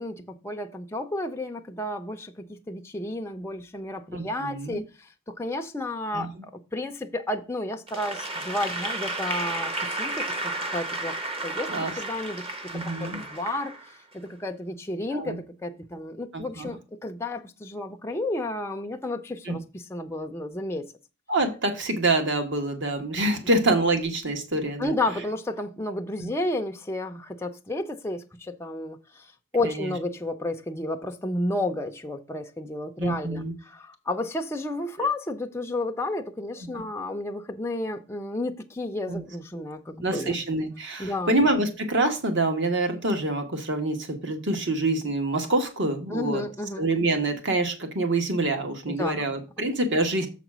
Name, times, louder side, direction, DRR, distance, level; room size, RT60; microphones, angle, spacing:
voice 1, 0.0-11.1 11.4-12.4 12.7-13.7 14.1-20.9 24.8-29.3 29.5-40.4 41.0-41.3 46.1-46.9 48.9-49.3 49.6-49.7, left 2 dB, 10° left, 0.5 m, -32 dB
voice 2, 4.1-4.8 6.1-6.3 11.7-11.9 12.7-13.2 15.1-15.4 16.3-16.7 19.4-19.5 21.3-24.9 29.6-29.9 33.0-33.5 36.7-36.8 39.1-39.2 40.0-46.4 46.8-50.3, right 2 dB, 55° right, 1.3 m, -26 dB
Applause / Crowd, 7.9-14.1, right 2 dB, 25° right, 0.9 m, -32 dB
7.4 x 4.0 x 6.0 m
head